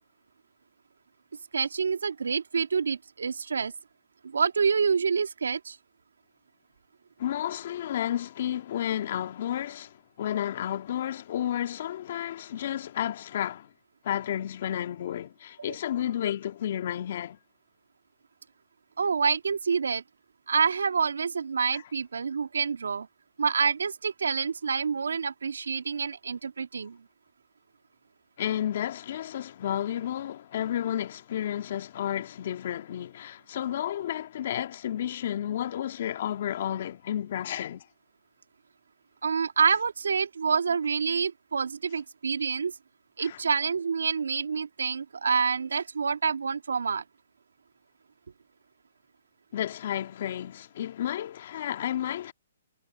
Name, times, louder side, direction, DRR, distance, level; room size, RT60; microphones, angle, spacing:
voice 1, 1.5-3.7 4.2-5.8 19.0-20.0 20.5-23.1 23.4-27.0 39.2-42.7 43.2-47.0, right 5 dB, 90° right, 2.3 m, -27 dB
voice 2, 7.2-13.7 14.0-17.4 21.7-21.8 28.4-37.9 43.2-43.4 49.5-52.3, left 11 dB, 50° left, 2.2 m, -32 dB
hypercardioid pair, 150°, 0 cm